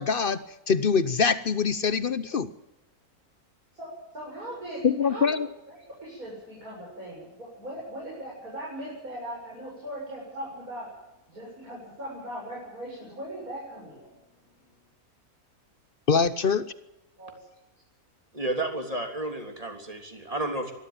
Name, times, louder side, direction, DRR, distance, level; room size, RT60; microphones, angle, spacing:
voice 1, 0.0-2.5 4.8-5.5 16.1-16.7, left 5 dB, 45° left, 15 dB, 0.9 m, -24 dB
voice 2, 3.7-5.3 5.7-10.9 11.3-14.1 17.2-17.4, right 1 dB, 70° right, -5 dB, 8.3 m, -39 dB
voice 3, 18.3-20.7, right 1 dB, 25° right, 4 dB, 3.5 m, -31 dB
24.5 x 13.0 x 9.0 m, 0.95 s
omnidirectional pair, 1.6 m